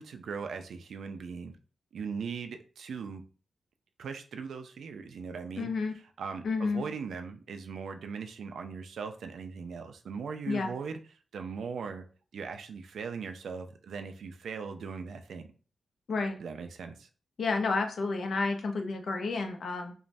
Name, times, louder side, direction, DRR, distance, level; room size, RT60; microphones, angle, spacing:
voice 1, 0.0-1.6 1.9-3.2 4.0-5.7 6.2-11.0 11.3-12.0 12.3-15.5 16.4-17.1, right 5 dB, 85° right, 7 dB, 0.3 m, -39 dB
voice 2, 5.6-6.0 6.4-6.8 10.5-10.7 16.1-16.4 17.4-19.9, left 3 dB, 70° left, 5 dB, 0.5 m, -30 dB
3.0 x 2.1 x 2.5 m, 0.39 s
wide cardioid pair, 105°, 0 cm